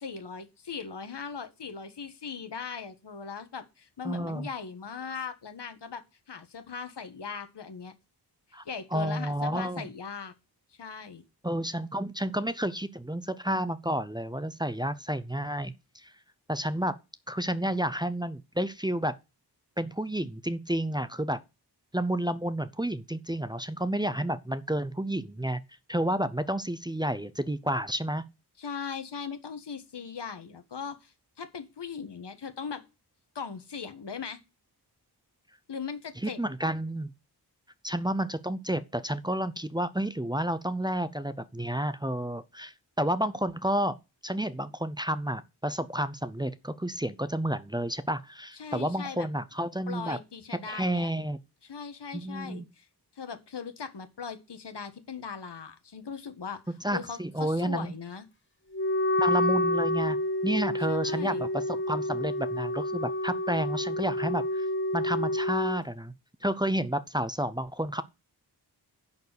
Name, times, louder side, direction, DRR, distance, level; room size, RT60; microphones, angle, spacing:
voice 1, 0.0-7.9 8.6-10.3 10.8-11.2 28.6-32.8 33.3-34.4 35.7-36.4 48.5-49.3 49.9-51.1 51.6-52.9 53.1-56.6 56.9-58.3 60.9-61.5, left 6 dB, 80° left, 1.6 m, -39 dB
voice 2, 4.0-4.5 8.5-8.6 8.9-9.9 11.4-16.1 16.5-17.0 17.3-19.1 19.8-21.4 21.9-25.6 25.9-28.2 36.2-37.1 37.8-44.0 44.2-50.2 50.5-51.4 52.1-52.7 56.8-57.9 59.2-60.2 60.4-64.7 64.9-66.1 66.4-68.0, right 1 dB, 10° right, 0.6 m, -30 dB
Wind instrument woodwind instrument, 58.7-65.8, left 1 dB, 30° left, 1.4 m, -29 dB
10.5 x 4.7 x 8.1 m
wide cardioid pair, 100°, 41 cm